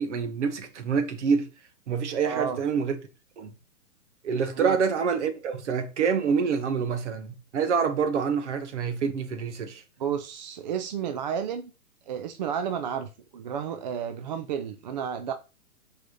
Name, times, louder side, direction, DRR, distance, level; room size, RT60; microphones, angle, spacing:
voice 1, 0.0-1.5 1.9-3.0 3.4-3.5 4.2-9.8, right 6 dB, 50° right, 1.5 m, -26 dB
voice 2, 2.2-2.6 4.5-4.8 10.0-11.7 12.1-15.3, right 8 dB, 30° right, 0.6 m, -32 dB
6.1 x 4.2 x 5.3 m
figure-of-eight pair, 120°, 43 cm